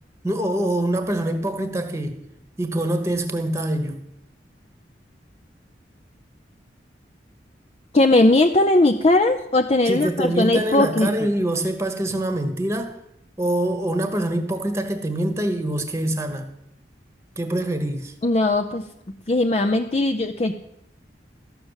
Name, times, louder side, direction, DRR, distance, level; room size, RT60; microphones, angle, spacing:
voice 1, 0.2-2.2 2.6-4.0 9.9-13.0 13.4-16.5 17.4-18.1, right 1 dB, 15° right, 1.2 m, -24 dB
voice 2, 7.9-11.1 18.2-18.8 19.3-20.5, left 2 dB, 35° left, 0.6 m, -19 dB
13.0 x 6.8 x 8.0 m
head